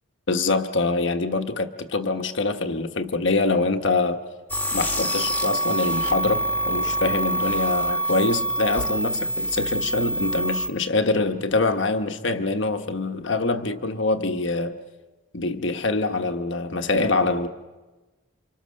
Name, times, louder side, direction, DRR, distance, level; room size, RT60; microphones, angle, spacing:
voice 1, 0.3-4.2 4.7-14.7 15.3-17.5, left 3 dB, 60° left, 1.2 m, -24 dB
sound 1, 4.5-10.7, right 1 dB, 10° left, 1.5 m, -25 dB
28.5 x 25.5 x 6.5 m
head